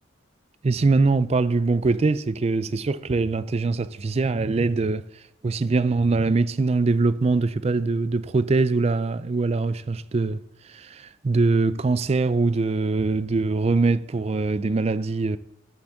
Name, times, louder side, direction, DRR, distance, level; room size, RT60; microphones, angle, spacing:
voice 1, 0.6-5.1 5.4-10.4 10.7-15.4, right 3 dB, 30° right, 0.3 m, -23 dB
7.5 x 7.2 x 7.1 m
head